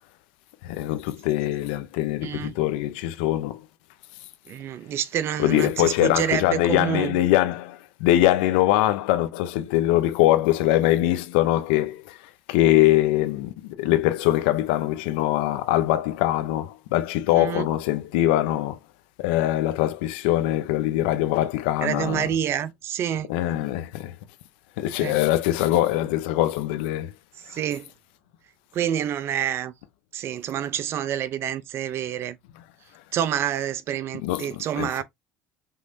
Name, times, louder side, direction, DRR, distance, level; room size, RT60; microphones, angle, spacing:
voice 1, 0.6-3.6 5.4-12.2 12.5-18.8 19.2-22.3 23.3-24.2 24.8-27.1 34.2-35.0, left 14 dB, 85° left, 0.8 m, -22 dB
voice 2, 2.2-2.5 4.5-7.2 17.3-17.7 21.8-23.3 25.0-25.2 27.5-27.9 28.7-29.7 30.1-32.4 33.1-35.0, right 10 dB, 55° right, 0.7 m, -28 dB
5.7 x 3.2 x 2.8 m
supercardioid pair, 95°, 5 cm